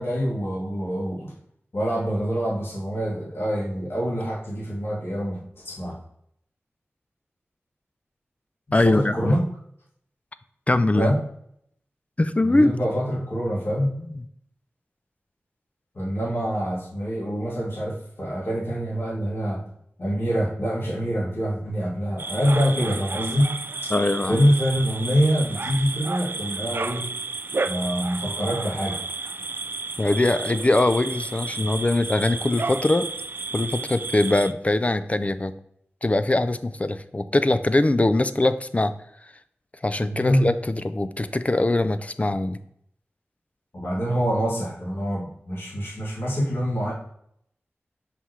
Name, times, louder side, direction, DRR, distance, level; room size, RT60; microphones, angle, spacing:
voice 1, 0.0-1.3 1.7-5.9 8.7-9.4 10.9-11.2 12.4-13.9 15.9-19.6 20.0-23.5 24.3-27.0 27.6-29.0 40.0-40.5 43.7-46.9, equal, 60° left, -6 dB, 2.6 m, -25 dB
voice 2, 8.7-9.3 10.7-11.1 12.2-12.7 14.1-14.2 23.9-24.4 30.0-33.1 33.5-35.5 36.0-38.9 39.8-42.6, left 2 dB, 30° left, 12 dB, 0.4 m, -22 dB
sound 1, 22.2-34.5, right 3 dB, 50° right, 0.4 m, -32 dB
5.7 x 5.6 x 3.2 m, 0.70 s
cardioid pair, 50°, 5 cm